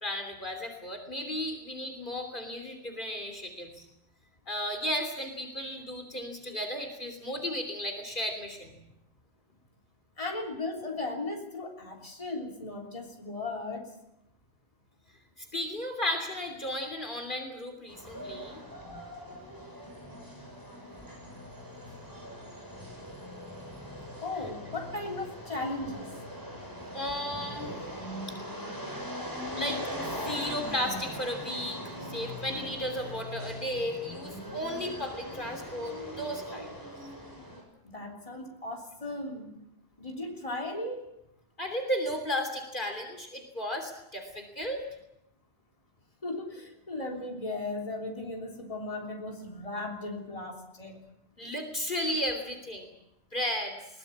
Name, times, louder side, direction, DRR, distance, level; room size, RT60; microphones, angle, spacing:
voice 1, 0.0-3.8 4.5-8.7 15.4-18.6 26.9-27.7 29.6-36.7 41.6-44.8 51.4-52.9 53.3-53.8, equal, 50° left, 4 dB, 3.3 m, -34 dB
voice 2, 10.2-13.9 24.2-26.1 37.8-39.6 40.0-41.1 46.2-51.0, left 2 dB, 30° left, 0 dB, 3.6 m, -36 dB
sound 1, 17.9-37.6, equal, 20° right, 7.4 m, -41 dB
21.5 x 19.5 x 8.7 m, 0.84 s
omnidirectional pair, 1.1 m